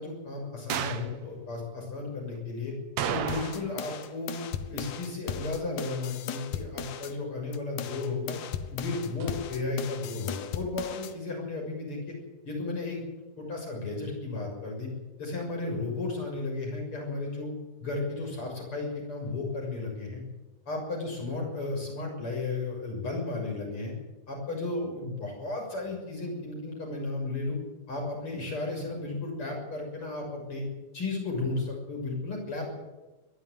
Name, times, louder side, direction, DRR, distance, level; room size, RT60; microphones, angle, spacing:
voice 1, 0.0-2.7 3.1-4.4 4.7-8.4 8.7-12.1 12.5-13.0 13.4-14.9 15.2-17.5 17.8-20.2 20.7-23.9 24.3-27.6 27.9-30.6 30.9-32.8, left 3 dB, 35° left, 1 dB, 7.4 m, -34 dB
sound 1, 0.7-1.1 3.0-3.8 4.1-4.2 9.2-9.3, right 8 dB, 65° right, 2.2 m, -32 dB
sound 2, 3.3-7.1 7.5-11.1, left 9 dB, 70° left, 2.4 m, -38 dB
22.5 x 12.5 x 9.5 m, 1.1 s
omnidirectional pair, 4.0 m